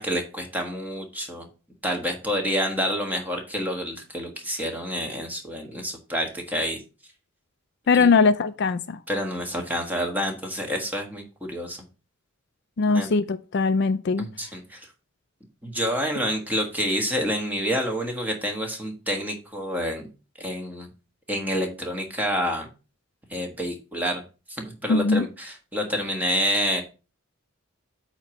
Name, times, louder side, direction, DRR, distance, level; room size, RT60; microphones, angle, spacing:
voice 1, 0.0-1.4 1.8-6.8 7.9-8.1 9.1-11.8 12.9-13.1 14.2-14.9 15.6-20.1 20.4-20.9 21.3-22.7 23.3-24.2 24.6-26.8, equal, 10° right, 1.5 m, -28 dB
voice 2, 7.9-9.0 12.8-14.3 24.9-25.3, left 4 dB, 55° left, 0.4 m, -21 dB
8.3 x 3.0 x 6.3 m
head